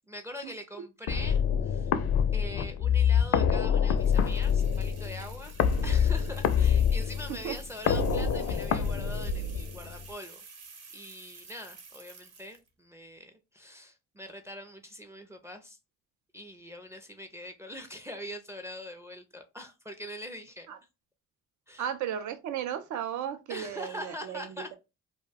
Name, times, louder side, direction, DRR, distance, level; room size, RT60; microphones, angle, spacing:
voice 1, 0.1-1.9 2.3-10.4 10.9-15.8 16.3-20.7 21.7-21.9 23.5-24.8, equal, 10° right, 0.4 m, -43 dB
sound 1, 1.1-10.0, left 7 dB, 55° left, 0.4 m, -26 dB
sound 2, 4.0-12.7, right 4 dB, 55° right, 0.9 m, -51 dB
voice 2, 21.8-24.8, right 9 dB, 75° right, 0.5 m, -35 dB
2.3 x 2.2 x 3.3 m
cardioid pair, 90°, 30 cm